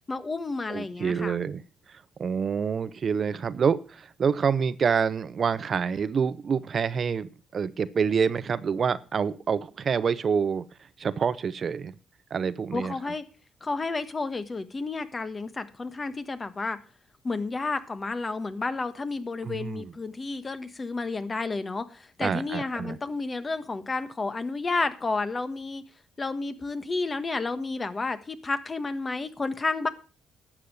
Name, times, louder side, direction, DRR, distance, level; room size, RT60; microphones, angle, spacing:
voice 1, 0.1-1.4 12.7-13.2 13.6-16.8 17.2-25.8 26.2-29.9, left 3 dB, 30° left, 11 dB, 1.3 m, -31 dB
voice 2, 0.7-1.6 1.9-10.6 11.0-11.9 12.3-13.1 19.4-19.9 22.2-23.0, right 6 dB, 50° right, 16 dB, 0.7 m, -27 dB
11.5 x 7.4 x 6.5 m, 0.35 s
cardioid pair, 90°, 0 cm